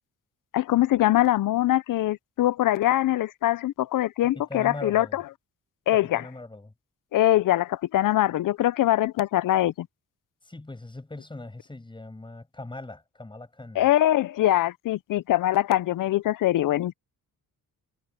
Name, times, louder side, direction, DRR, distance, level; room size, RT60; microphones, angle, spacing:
voice 1, 0.5-5.2 5.9-6.2 7.1-9.9 13.8-16.9, left 14 dB, 65° left, 0.5 m, -23 dB
voice 2, 4.2-5.2 5.9-6.7 10.4-13.8, left 2 dB, 15° left, 7.3 m, -40 dB
wide cardioid pair, 140°, 34 cm